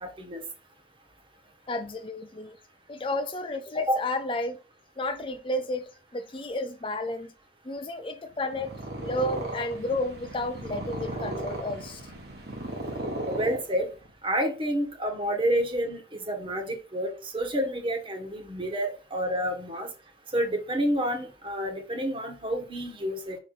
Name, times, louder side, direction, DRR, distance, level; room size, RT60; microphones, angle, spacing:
voice 1, 0.0-0.4 3.9-4.0 13.3-13.9 14.2-16.0 16.3-19.9 20.3-23.4, equal, 30° right, 1.6 m, -29 dB
voice 2, 1.7-2.6 2.9-4.6 5.0-7.3 7.6-8.7 9.0-12.0, left 1 dB, 30° left, 0.5 m, -32 dB
Purr, 8.4-14.1, right 1 dB, 65° right, 1.8 m, -36 dB
5.8 x 5.0 x 3.9 m
head